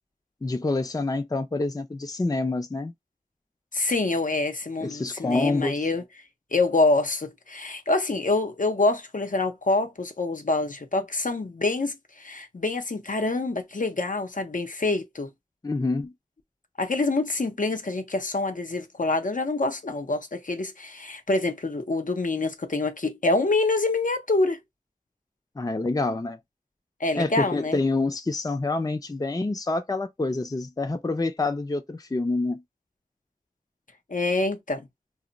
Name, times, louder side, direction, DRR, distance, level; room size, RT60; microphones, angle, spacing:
voice 1, 0.4-2.9 4.8-5.9 15.6-16.1 25.6-26.4 27.2-32.6, left 2 dB, 25° left, 0.4 m, -27 dB
voice 2, 3.7-6.0 6.5-15.3 16.8-24.6 27.0-27.8 34.1-34.9, left 2 dB, 70° left, 0.6 m, -26 dB
2.2 x 2.0 x 3.8 m
wide cardioid pair, 40°, 14 cm